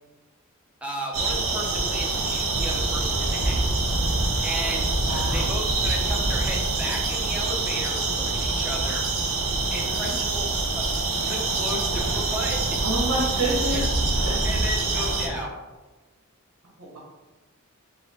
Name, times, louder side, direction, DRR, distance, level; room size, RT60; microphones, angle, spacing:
voice 1, 0.8-3.6 4.4-4.9 5.3-9.0 9.7-12.8 13.7-13.8 14.4-15.5, equal, 5° right, -2 dB, 0.7 m, -34 dB
sound 1, 1.1-15.3, right 2 dB, 70° right, 0.7 m, -25 dB
voice 2, 5.0-5.5 9.7-10.1 12.8-13.9 14.2-14.3 16.8-17.0, right 1 dB, 90° right, -6 dB, 1.2 m, -29 dB
4.7 x 2.3 x 3.5 m, 1.2 s
head